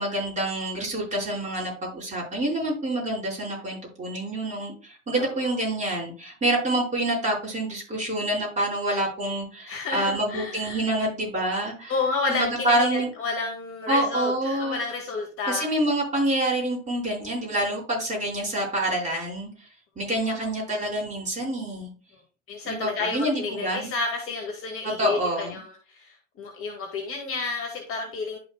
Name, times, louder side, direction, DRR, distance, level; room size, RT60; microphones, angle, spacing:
voice 1, 0.0-11.9 12.3-13.1 13.9-14.8 15.5-19.7 20.0-21.9 22.6-23.9 25.0-25.6, right 1 dB, 20° right, -3 dB, 4.7 m, -27 dB
voice 2, 5.2-5.5 9.7-10.9 11.9-15.7 20.2-20.5 22.5-28.4, left 4 dB, 35° left, 2 dB, 1.9 m, -31 dB
11.5 x 6.0 x 2.3 m, 0.35 s
figure-of-eight pair, 80°, 39 cm